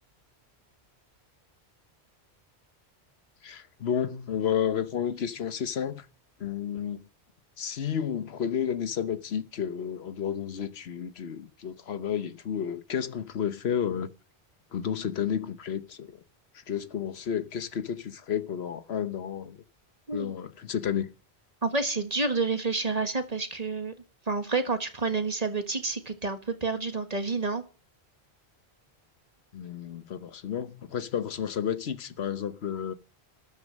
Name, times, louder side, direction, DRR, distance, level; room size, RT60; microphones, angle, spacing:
voice 1, 3.4-6.0 6.4-7.0 7.6-14.1 14.7-16.2 16.7-19.6 20.1-21.1 29.5-32.9, left 8 dB, 70° left, 1.2 m, -31 dB
voice 2, 21.6-23.9 24.2-27.6, right 3 dB, 35° right, 1.6 m, -29 dB
12.5 x 11.5 x 6.4 m
omnidirectional pair, 1.1 m